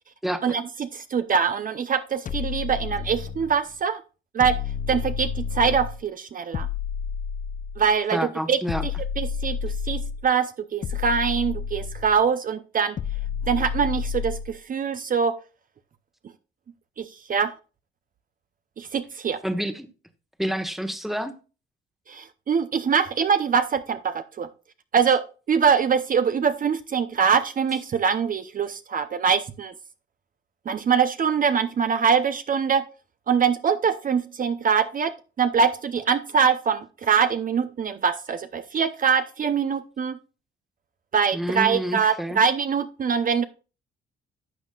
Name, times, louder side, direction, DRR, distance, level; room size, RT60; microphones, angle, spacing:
voice 1, 0.4-4.0 4.3-4.6 4.9-6.7 7.8-8.9 9.2-13.0 13.5-15.4 17.0-17.5 18.8-19.4 22.1-24.5 24.9-29.7 30.7-32.8 33.3-40.2 41.1-43.4, right 6 dB, 45° right, 0.7 m, -23 dB
sound 1, 2.3-3.6 4.4-6.0 6.5-8.0 8.7-10.3 10.8-12.2 13.0-14.6, left 6 dB, 40° left, 0.5 m, -30 dB
voice 2, 8.1-8.8 19.4-19.9 20.4-21.3 41.3-42.4, equal, ahead, 1.2 m, -28 dB
12.0 x 7.1 x 2.4 m
cardioid pair, 90°, 20 cm